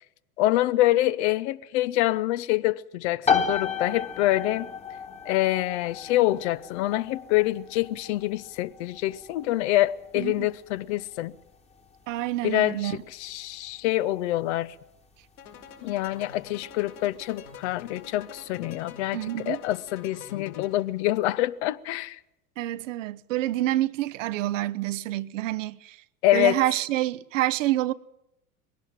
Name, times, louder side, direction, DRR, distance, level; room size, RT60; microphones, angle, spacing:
voice 1, 0.4-4.7 5.3-11.3 12.4-14.7 15.8-22.2 26.2-26.6, left 15 dB, 50° left, 0.8 m, -26 dB
sound 1, 3.2-17.7, left 6 dB, 15° left, 1.6 m, -34 dB
voice 2, 10.2-10.5 12.1-13.0 19.1-19.6 22.6-26.0 26.3-27.9, right 15 dB, 55° right, 0.9 m, -27 dB
sound 2, 15.4-21.0, left 6 dB, 70° left, 5.5 m, -46 dB
21.0 x 17.5 x 7.4 m
figure-of-eight pair, 90°, 45 cm